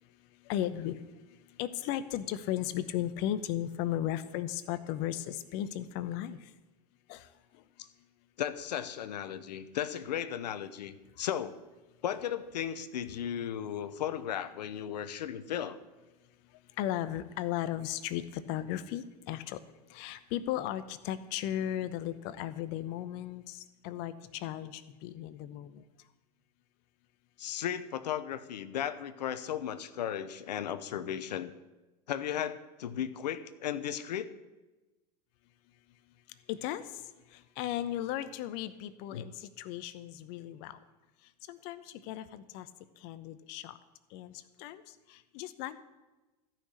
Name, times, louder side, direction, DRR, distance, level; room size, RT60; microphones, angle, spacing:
voice 1, 0.5-1.0 1.6-6.4 7.1-7.2 16.8-19.6 19.9-23.6 23.8-25.8 36.5-36.8 37.6-40.8 41.5-42.7 43.0-43.7 44.1-44.3 44.6-44.8 45.3-45.8, left 12 dB, 55° left, 13 dB, 0.9 m, -35 dB
voice 2, 8.4-11.6 12.0-15.8 27.4-31.5 32.1-34.3 39.1-39.2, left 10 dB, 80° left, 14 dB, 0.8 m, -35 dB
14.0 x 6.0 x 8.3 m, 1.1 s
hypercardioid pair, 95°, 21 cm